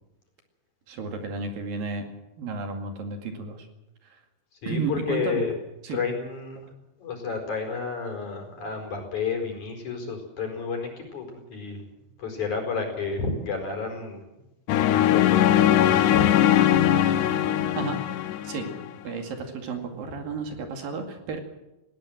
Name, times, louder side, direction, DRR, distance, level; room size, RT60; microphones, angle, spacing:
voice 1, 0.9-2.1 2.4-3.7 4.0-4.2 4.7-5.5 5.8-6.0 17.8-18.0 18.4-18.7 19.0-21.4, right 4 dB, 65° right, 4 dB, 4.0 m, -32 dB
voice 2, 4.6-5.5 5.9-6.7 7.0-11.8 12.2-14.2 14.8-16.3, left 5 dB, 50° left, 3 dB, 5.8 m, -31 dB
sound 1, 14.7-18.9, left 11 dB, 75° left, 2.0 m, -21 dB
19.5 x 18.0 x 7.7 m, 0.96 s
omnidirectional pair, 4.4 m